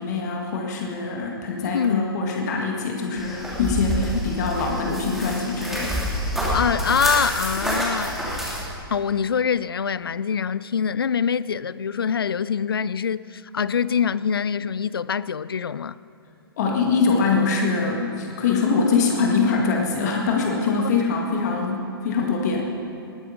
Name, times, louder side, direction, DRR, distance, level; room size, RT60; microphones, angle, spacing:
voice 1, 0.0-6.0 16.6-22.9, left 4 dB, 45° left, 1.9 m, -23 dB
voice 2, 1.6-2.1 6.5-8.2 8.9-16.0, left 7 dB, 70° left, 0.4 m, -24 dB
sound 1, 3.2-8.6, equal, ahead, 3.2 m, -27 dB
19.5 x 9.9 x 5.3 m
figure-of-eight pair, 120°, 13 cm